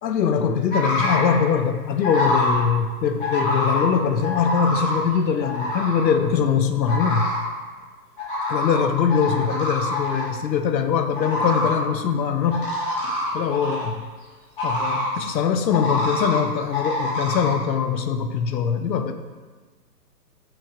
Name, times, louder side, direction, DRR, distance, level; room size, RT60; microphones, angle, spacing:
voice 1, 0.0-7.3 8.5-12.7 13.0-14.1 14.6-19.1, left 7 dB, 85° left, 7 dB, 0.6 m, -22 dB
sound 1, 0.7-1.3 2.0-2.6 3.2-3.8 4.2-5.0 5.4-6.1 6.9-7.4 8.2-8.8 9.1-10.3 11.1-11.7 12.5-13.9 14.6-15.1 15.7-16.4 16.7-17.5, left 1 dB, 35° left, 1.2 m, -25 dB
6.0 x 3.1 x 2.4 m, 1.4 s
hypercardioid pair, 170°, 50 cm